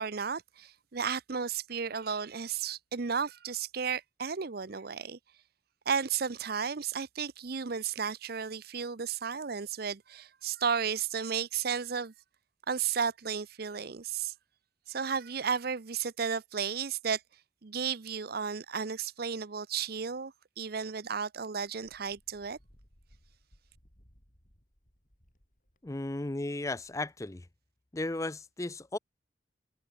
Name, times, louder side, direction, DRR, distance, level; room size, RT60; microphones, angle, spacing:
voice 1, 0.0-5.2 5.9-12.1 12.7-14.3 14.9-17.2 17.6-22.6, right 6 dB, 50° right, 0.7 m, -33 dB
Wind, 21.6-27.5, equal, 40° left, 7.1 m, -65 dB
voice 2, 25.8-27.4 27.9-29.0, left 2 dB, 15° left, 0.5 m, -35 dB
head